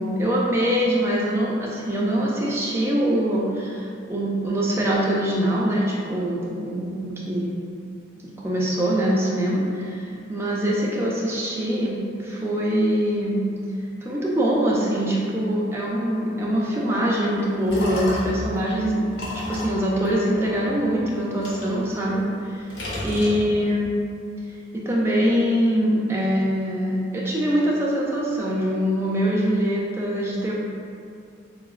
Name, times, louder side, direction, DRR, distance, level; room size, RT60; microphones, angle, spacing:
voice 1, 0.0-7.5 8.4-13.4 14.0-19.1 19.3-22.6 23.0-23.9 24.7-30.5, equal, 15° right, -5 dB, 0.3 m, -23 dB
sound 1, 17.3-18.5 19.1-20.9 21.4-22.4 22.7-23.8, left 1 dB, 65° left, 0.6 m, -33 dB
3.8 x 2.0 x 2.3 m, 2.4 s
head